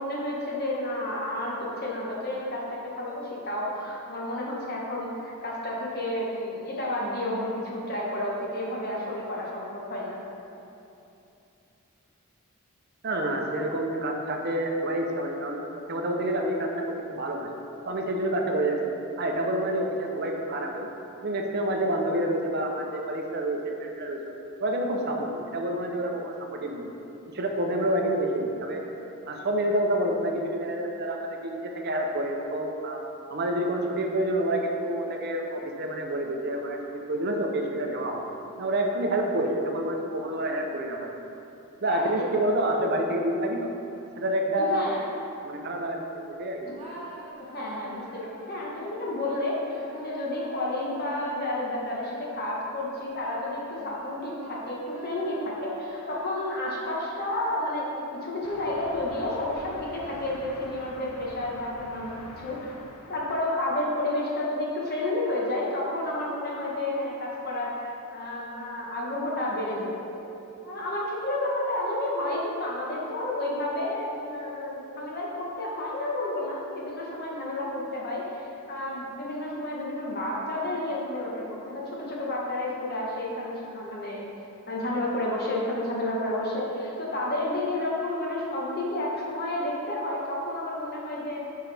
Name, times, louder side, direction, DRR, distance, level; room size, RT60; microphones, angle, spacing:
voice 1, 0.0-10.2 41.8-42.2 44.6-45.0 47.4-62.7 63.1-70.0 70.6-84.2 84.7-91.4, left 1 dB, 45° left, -4 dB, 1.2 m, -31 dB
voice 2, 13.0-15.6 15.9-17.5 17.8-18.8 19.2-20.9 21.2-24.2 24.6-26.9 27.3-28.8 29.3-33.0 33.3-38.3 38.6-41.1 41.8-43.7 44.2-44.9 45.4-46.7, right 1 dB, 45° right, 2 dB, 0.6 m, -28 dB
sound 1, 46.7-53.0 53.6-57.5, right 1 dB, 25° right, 1.0 m, -47 dB
sound 2, 58.4-63.5, left 2 dB, 85° left, 0.6 m, -46 dB
7.8 x 4.7 x 3.4 m, 2.8 s
head